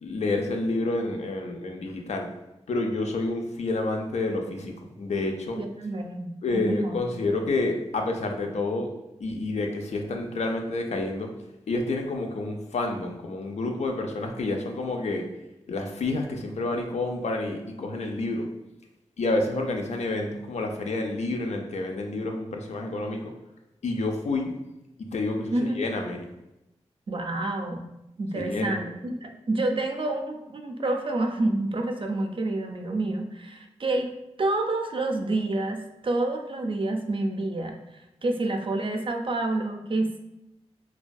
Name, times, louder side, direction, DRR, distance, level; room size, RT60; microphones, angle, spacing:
voice 1, 0.0-2.3 2.7-5.6 6.4-8.9 9.2-11.3 11.7-15.2 15.7-18.4 19.2-23.3 23.8-24.5 25.1-26.2 28.4-28.8, left 2 dB, 75° left, 3 dB, 0.4 m, -29 dB
voice 2, 5.6-7.0 25.5-25.8 27.1-27.9 28.2-34.1 34.4-37.8 38.2-40.2, right 2 dB, 50° right, 4 dB, 0.4 m, -28 dB
2.5 x 2.2 x 2.2 m, 0.92 s
cardioid pair, 45°, 12 cm